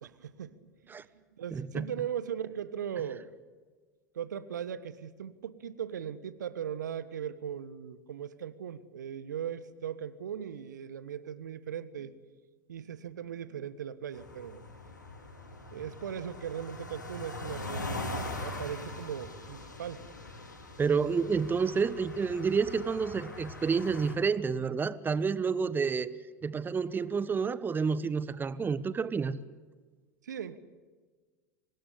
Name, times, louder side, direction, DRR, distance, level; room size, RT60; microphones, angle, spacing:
voice 1, 0.0-3.3 4.1-12.1 12.7-14.6 15.7-20.0 30.2-30.6, right 9 dB, 75° right, 16 dB, 1.3 m, -39 dB
voice 2, 1.5-1.9 20.8-26.1 26.4-29.4, right 5 dB, 20° right, 17 dB, 1.2 m, -29 dB
sound 1, 14.1-24.2, left 2 dB, 85° left, 5.1 m, -42 dB
25.0 x 20.0 x 9.9 m, 1.4 s
figure-of-eight pair, 85°, 10 cm